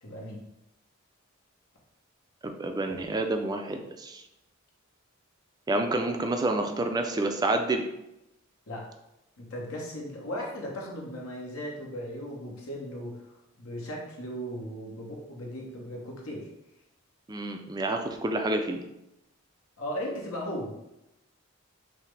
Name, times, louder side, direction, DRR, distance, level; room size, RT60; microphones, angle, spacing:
voice 1, 0.0-0.4 8.7-8.9 9.4-13.2 13.5-16.5 19.8-20.7, equal, 75° left, -1 dB, 1.0 m, -37 dB
voice 2, 2.4-4.2 5.7-7.9 17.3-18.8, right 2 dB, 20° right, 5 dB, 0.3 m, -29 dB
5.6 x 2.0 x 3.2 m, 0.88 s
head